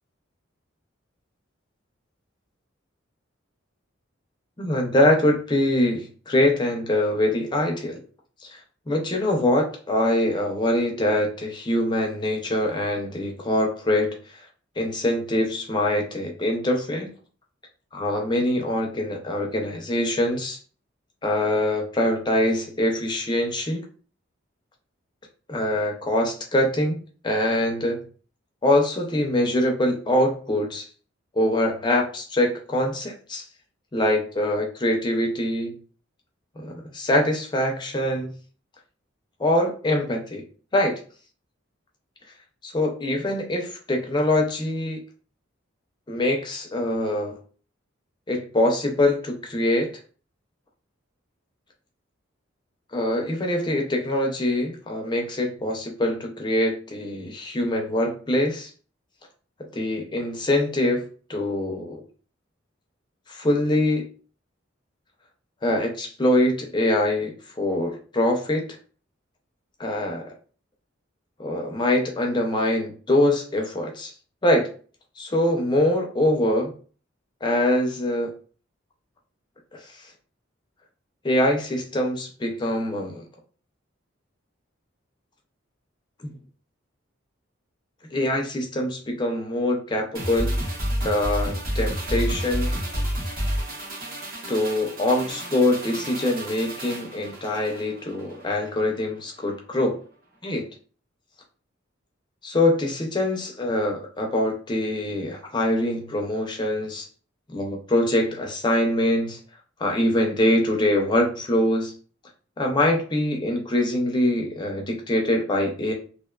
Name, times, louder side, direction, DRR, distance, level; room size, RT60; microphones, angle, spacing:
voice 1, 4.6-8.0 8.4-8.6 8.9-14.2 14.8-17.1 17.9-20.6 21.2-23.8 25.5-27.0 27.2-28.0 28.6-30.9 31.3-33.5 33.9-35.8 36.6-38.4 39.4-40.4 40.7-41.0 42.6-45.0 46.1-47.4 48.3-49.9 52.9-58.7 59.7-62.0 63.3-64.1 65.6-68.7 69.8-70.3 71.4-74.1 74.4-74.7 75.2-76.7 77.4-78.3 81.2-83.2 86.2-86.4 88.1-90.6 91.0-92.7 94.5-100.0 100.4-100.7 102.4-107.1 107.5-109.4 109.8-111.9 112.6-115.9, left 1 dB, 25° left, 2 dB, 0.5 m, -24 dB
sound 1, 90.1-98.7 99.0-99.2, equal, 50° right, 0.8 m, -30 dB
2.4 x 2.2 x 2.3 m, 0.40 s
head